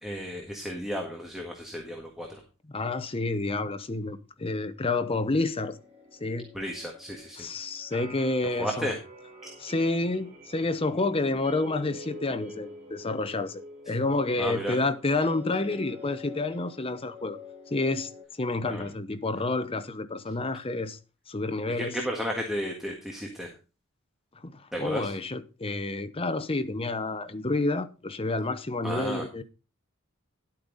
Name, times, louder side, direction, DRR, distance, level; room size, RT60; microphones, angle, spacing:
voice 1, 0.0-2.4 6.5-7.5 8.6-8.9 14.4-14.7 18.7-18.9 21.8-23.5 24.7-25.1 28.8-29.2, equal, ahead, 1.7 m, -33 dB
voice 2, 2.7-5.8 6.2-6.5 7.4-8.9 9.6-17.4 17.7-21.0 21.3-22.0 24.4-29.4, left 2 dB, 25° left, 0.8 m, -29 dB
sound 1, 5.7-18.2, left 1 dB, 35° right, 6.0 m, -46 dB
11.5 x 8.6 x 4.0 m
head